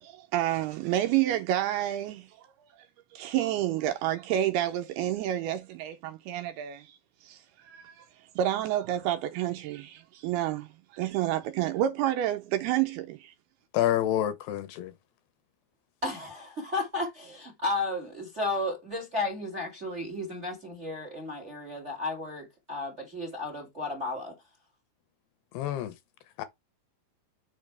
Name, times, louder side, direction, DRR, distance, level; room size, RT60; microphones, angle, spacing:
voice 1, 0.0-2.5 3.1-8.1 8.4-13.3, right 12 dB, 80° right, 2.4 m, -29 dB
voice 2, 13.7-14.9 25.5-25.9 26.4-26.5, left 12 dB, 80° left, 2.6 m, -28 dB
voice 3, 16.0-24.3, left 2 dB, 30° right, 1.2 m, -33 dB
6.4 x 5.4 x 3.3 m
omnidirectional pair, 5.0 m